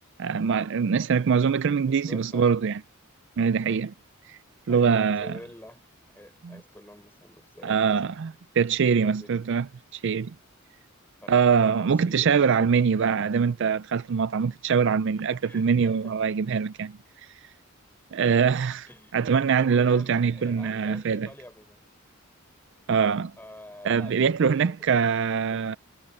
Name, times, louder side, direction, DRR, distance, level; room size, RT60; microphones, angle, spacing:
voice 1, 0.2-2.8 3.4-3.9 4.3-4.4 4.7-5.4 6.4-6.6 7.6-9.7 9.9-10.3 11.3-17.0 18.1-18.9 19.1-21.3 22.9-23.3 23.8-25.8, right 6 dB, 55° right, 0.4 m, -23 dB
voice 2, 1.8-2.5 4.7-5.8 6.1-8.0 9.0-9.6 9.9-10.1 11.2-11.3 11.6-12.7 15.3-16.2 18.9-21.9 23.4-24.2 24.6-25.7, left 1 dB, 10° left, 5.5 m, -48 dB
head